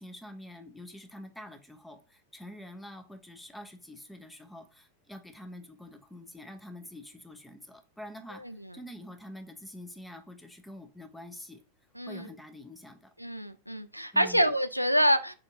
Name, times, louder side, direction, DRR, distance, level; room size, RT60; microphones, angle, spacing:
voice 1, 0.0-8.4 8.7-11.6 12.1-13.1 14.1-14.5, left 1 dB, 5° left, 0.8 m, -46 dB
voice 2, 12.0-12.3 13.2-15.3, equal, 90° right, 0.3 m, -26 dB
4.6 x 4.0 x 2.6 m
figure-of-eight pair, 90°, 0 cm